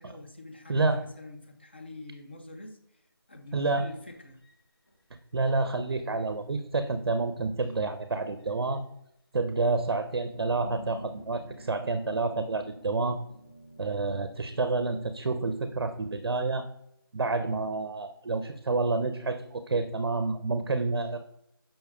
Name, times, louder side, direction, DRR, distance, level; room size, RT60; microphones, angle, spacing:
voice 1, 0.0-4.4, left 2 dB, 25° left, 5 dB, 0.4 m, -46 dB
voice 2, 0.7-1.0 3.5-3.9 5.3-8.8 9.3-13.2 13.8-16.7 17.1-21.2, right 3 dB, 80° right, 9 dB, 0.4 m, -29 dB
sound 1, 3.5-5.9 6.9-7.0 7.6-7.7 8.4-8.8 9.7-9.8 10.1-16.5, equal, 85° left, 1.6 m, -50 dB
5.3 x 2.2 x 3.4 m, 0.76 s
figure-of-eight pair, 170°, 13 cm